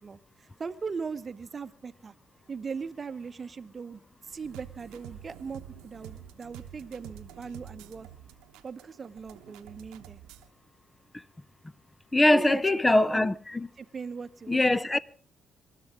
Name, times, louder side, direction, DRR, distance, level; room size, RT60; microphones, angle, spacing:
voice 1, 0.0-2.1 2.5-8.1 8.6-10.2 12.3-12.8 13.1-13.3 13.8-14.6, right 5 dB, 40° right, 0.9 m, -39 dB
sound 1, 4.3-10.5, right 10 dB, 75° right, 1.0 m, -48 dB
voice 2, 12.1-13.7 14.5-15.0, left 1 dB, 20° left, 0.7 m, -22 dB
26.5 x 12.0 x 3.7 m
hypercardioid pair, 45°, 0 cm